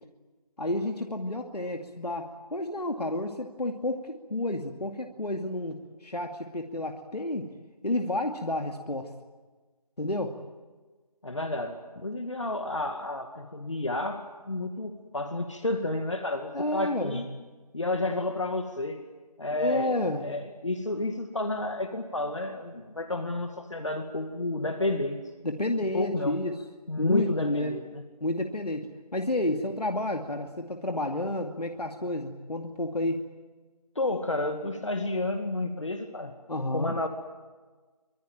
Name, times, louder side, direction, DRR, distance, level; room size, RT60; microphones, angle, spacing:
voice 1, 0.6-7.5 7.8-9.1 10.0-10.4 16.5-17.2 19.5-20.3 25.4-26.6 27.0-27.7 28.2-33.2 36.5-37.0, left 1 dB, 85° left, 4 dB, 2.4 m, -30 dB
voice 2, 11.2-17.3 17.7-19.0 19.4-20.0 20.2-25.2 25.9-26.4 26.9-28.0 34.0-36.3 36.7-37.1, left 2 dB, 50° left, 6 dB, 2.2 m, -31 dB
25.5 x 20.5 x 9.2 m, 1.3 s
figure-of-eight pair, 170°, 20 cm